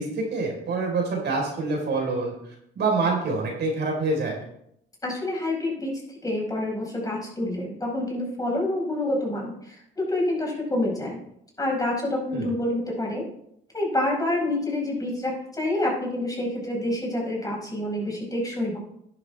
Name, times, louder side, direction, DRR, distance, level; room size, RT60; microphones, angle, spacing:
voice 1, 0.0-4.4 12.3-12.5, right 3 dB, 60° right, 0 dB, 4.3 m, -26 dB
voice 2, 5.0-11.2 11.6-13.2 13.7-18.8, left 1 dB, 20° left, -2 dB, 5.3 m, -27 dB
11.0 x 10.5 x 3.5 m, 0.73 s
cardioid pair, 90°, 20 cm